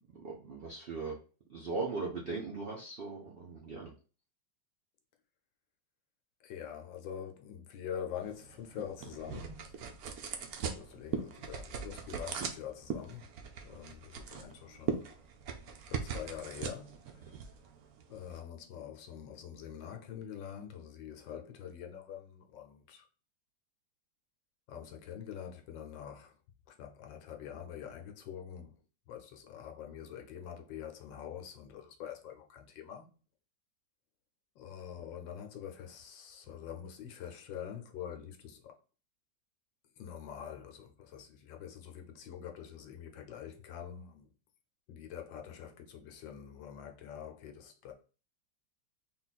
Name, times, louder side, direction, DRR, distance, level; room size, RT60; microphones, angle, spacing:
voice 1, 0.2-1.1 1.5-3.9, right 3 dB, 85° right, 0.5 m, -38 dB
voice 2, 6.4-9.7 10.7-13.3 13.6-15.1 15.9-17.6 18.1-23.1 24.7-26.4 26.7-28.8 29.1-33.1 34.5-38.7 40.0-44.3 44.9-47.9, left 9 dB, 85° left, 1.4 m, -45 dB
sound 1, 8.2-18.4, right 6 dB, 65° right, 0.9 m, -41 dB
3.8 x 2.4 x 4.1 m
omnidirectional pair, 2.0 m